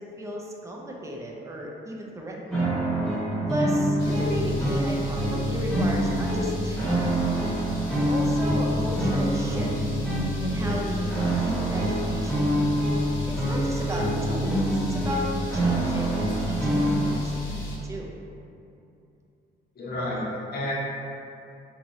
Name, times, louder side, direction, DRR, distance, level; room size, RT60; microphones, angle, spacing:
voice 1, 0.0-2.8 3.5-7.2 7.9-9.7 10.4-12.5 13.3-17.6 17.8-18.1, right 1 dB, 15° right, -1 dB, 0.4 m, -35 dB
sound 1, 2.5-17.1, right 1 dB, ahead, 0.9 m, -26 dB
sound 2, 4.0-17.8, left 1 dB, 85° left, 0.8 m, -35 dB
voice 2, 19.8-20.7, left 1 dB, 50° left, -6 dB, 0.8 m, -30 dB
3.0 x 2.4 x 2.7 m, 2.7 s
cardioid pair, 90°, 20 cm